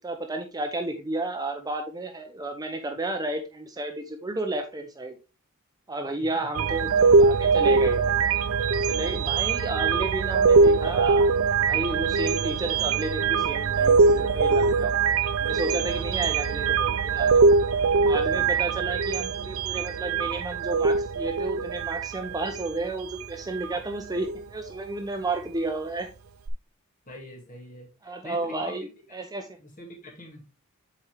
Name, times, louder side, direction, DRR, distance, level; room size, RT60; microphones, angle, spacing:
voice 1, 0.0-5.2 5.9-6.9 7.2-8.0 8.9-11.4 11.7-15.0 15.4-17.4 18.0-26.1 28.0-29.5, right 2 dB, 20° right, 5 dB, 0.7 m, -32 dB
sound 1, 6.5-23.7 24.2-24.4 26.5-26.6, right 4 dB, 70° right, 0.5 m, -22 dB
voice 2, 18.2-18.6 27.1-28.8 29.6-30.4, left 1 dB, 40° left, 0 dB, 2.2 m, -44 dB
7.4 x 4.3 x 3.2 m, 0.31 s
head